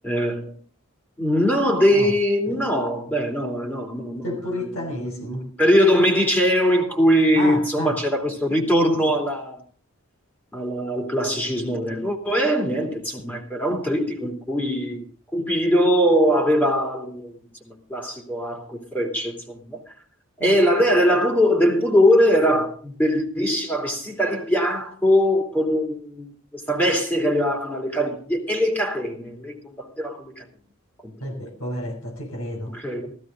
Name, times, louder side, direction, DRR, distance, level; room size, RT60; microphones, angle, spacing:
voice 1, 0.0-0.5 1.2-9.6 10.5-17.4 17.6-19.8 20.4-30.5 31.0-31.1 32.7-33.2, equal, 10° left, 2.8 m, -22 dB
voice 2, 4.2-5.4 7.3-8.0 20.4-20.6 31.2-32.7, equal, 75° left, 5.0 m, -30 dB
15.5 x 14.5 x 3.8 m
head